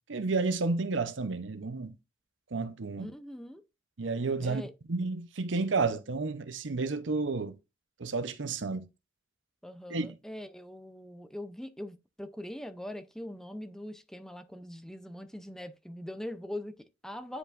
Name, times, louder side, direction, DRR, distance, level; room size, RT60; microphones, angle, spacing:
voice 1, 0.1-1.9 2.5-3.1 4.0-4.6 4.9-7.6 8.0-8.9 9.9-10.1, right 3 dB, 85° right, 0.8 m, -31 dB
voice 2, 3.0-3.6 4.4-4.7 9.6-17.4, left 1 dB, 5° left, 0.5 m, -42 dB
9.9 x 4.9 x 2.5 m
head